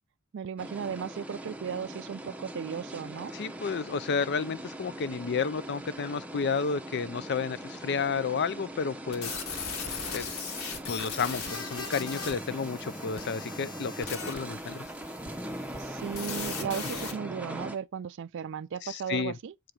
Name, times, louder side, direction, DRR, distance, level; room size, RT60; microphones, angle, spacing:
voice 1, 0.3-3.3 15.8-19.5, right 7 dB, 55° right, 0.4 m, -36 dB
sound 1, 0.6-17.8, right 1 dB, 5° right, 0.7 m, -41 dB
voice 2, 3.3-9.4 10.1-10.3 10.9-14.9 18.8-19.4, left 5 dB, 50° left, 0.5 m, -31 dB
sound 2, 9.1-17.1, left 5 dB, 70° left, 1.7 m, -39 dB
7.8 x 4.5 x 4.9 m
head